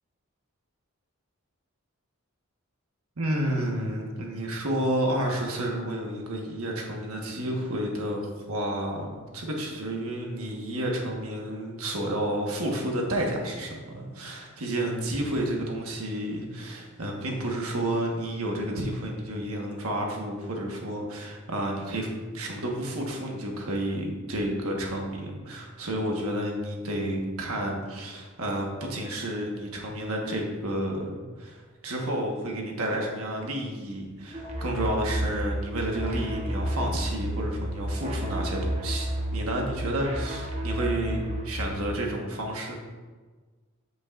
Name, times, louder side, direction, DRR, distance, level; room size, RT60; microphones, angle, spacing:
voice 1, 3.2-22.1 22.3-42.8, right 1 dB, 85° right, 0 dB, 1.4 m, -31 dB
sound 1, 34.3-41.7, right 1 dB, 30° right, 1.0 m, -31 dB
8.4 x 7.7 x 2.5 m, 1.4 s
head